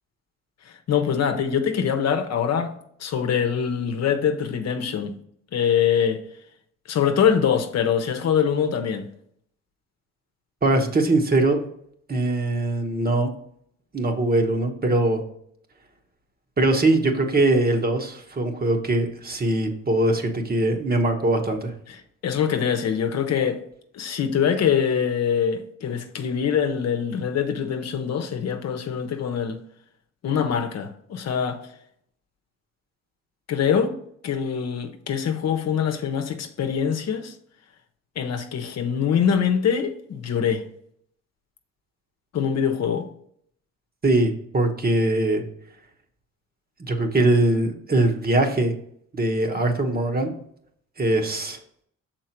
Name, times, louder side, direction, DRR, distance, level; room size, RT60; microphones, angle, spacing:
voice 1, 0.6-2.7 3.0-5.1 5.5-6.2 6.9-9.1 21.9-22.0 22.2-23.6 23.9-29.6 30.2-31.6 33.5-34.0 34.2-37.3 38.2-40.6 42.3-43.1, left 7 dB, 60° left, 0.9 m, -24 dB
voice 2, 10.6-11.6 12.1-13.3 13.9-15.2 16.6-21.7 44.0-45.4 46.8-48.7 49.1-50.3 51.0-51.6, right 2 dB, 30° right, 1.1 m, -21 dB
6.4 x 4.5 x 4.4 m
cardioid pair, 90°, 30 cm